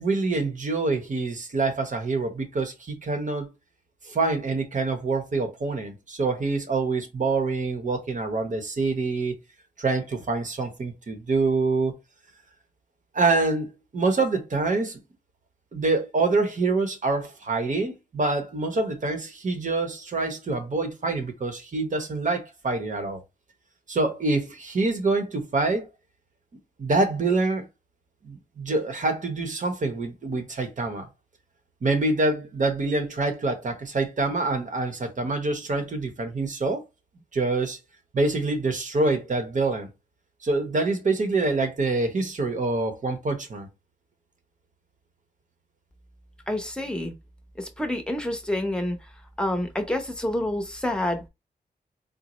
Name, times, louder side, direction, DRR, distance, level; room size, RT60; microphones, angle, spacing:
voice 1, 0.0-3.5 4.1-9.4 9.8-11.9 13.1-15.0 15.7-23.2 23.9-25.9 26.8-27.7 28.2-31.1 31.8-36.8 37.3-37.8 38.1-39.9 40.4-43.7, right 3 dB, 50° right, 0.8 m, -26 dB
voice 2, 46.5-47.1 47.6-49.0 49.4-51.3, left 1 dB, 5° left, 0.7 m, -28 dB
3.9 x 2.0 x 3.0 m
wide cardioid pair, 90°, 17 cm